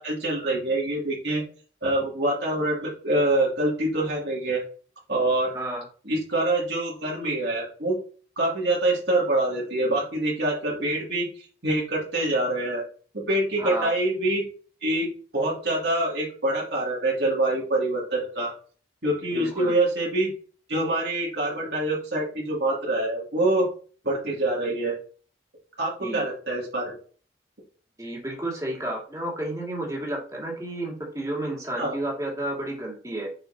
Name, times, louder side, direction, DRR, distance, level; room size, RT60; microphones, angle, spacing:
voice 1, 0.0-1.4 1.8-4.6 5.1-5.5 6.1-8.0 8.4-12.8 13.3-14.4 14.8-15.1 15.3-18.5 19.0-20.3 20.7-23.7 24.0-24.9 25.8-26.9 31.8-32.0, right 1 dB, 70° right, -5 dB, 2.6 m, -25 dB
voice 2, 5.5-5.8 13.6-13.9 19.3-19.7 26.0-26.2 28.0-33.3, right 1 dB, 20° right, -2 dB, 2.3 m, -31 dB
6.7 x 5.6 x 2.8 m, 0.42 s
head